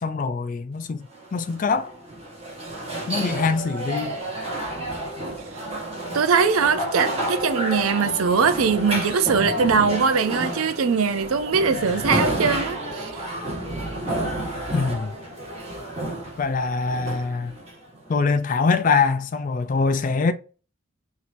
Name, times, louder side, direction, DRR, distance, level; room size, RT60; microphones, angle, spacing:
voice 1, 0.0-1.9 3.1-4.2 14.7-15.1 16.4-17.5 18.1-20.3, left 4 dB, 40° left, 0.3 m, -23 dB
sound 1, 1.1-18.1, right 1 dB, 30° right, 1.5 m, -30 dB
voice 2, 6.1-13.2, right 5 dB, 80° right, 0.5 m, -21 dB
6.0 x 2.7 x 2.6 m
head